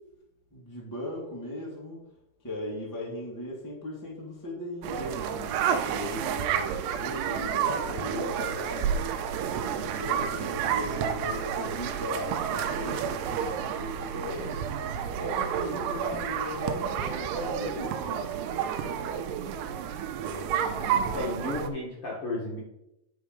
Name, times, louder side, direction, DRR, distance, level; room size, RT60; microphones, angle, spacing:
voice 1, 0.5-2.0 2.4-8.9 9.4-14.6 15.1-18.3 18.8-19.3 20.2-21.4, left 1 dB, 15° left, -3 dB, 0.6 m, -38 dB
sound 1, 4.8-21.7, right 8 dB, 85° right, 2.7 m, -30 dB
voice 2, 20.8-22.6, left 2 dB, 55° left, -4 dB, 1.6 m, -34 dB
9.8 x 4.7 x 5.2 m, 0.86 s
omnidirectional pair, 4.8 m